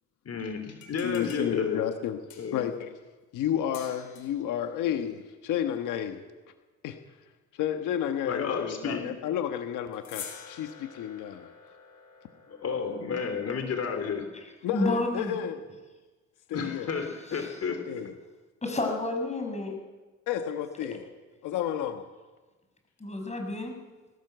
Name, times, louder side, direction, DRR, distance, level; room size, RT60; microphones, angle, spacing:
voice 1, 0.2-1.8 2.4-2.6 8.3-9.1 12.5-14.3 16.5-17.9, left 5 dB, 55° left, 6 dB, 3.1 m, -32 dB
sound 1, 0.7-2.7 3.7-4.5 9.9-13.5, left 7 dB, 75° left, 5.2 m, -47 dB
voice 2, 1.0-2.2 2.5-2.9 3.3-6.2 6.8-7.0 7.5-11.5 14.6-15.6 16.5-16.9 17.8-18.1 20.3-21.0 21.4-22.0, left 10 dB, 90° left, 6 dB, 1.4 m, -31 dB
voice 3, 14.7-15.3 17.4-17.5 18.6-19.8 23.0-23.8, left 2 dB, 20° left, 4 dB, 6.5 m, -30 dB
22.0 x 18.5 x 8.1 m, 1.3 s
cardioid pair, 90°, 30 cm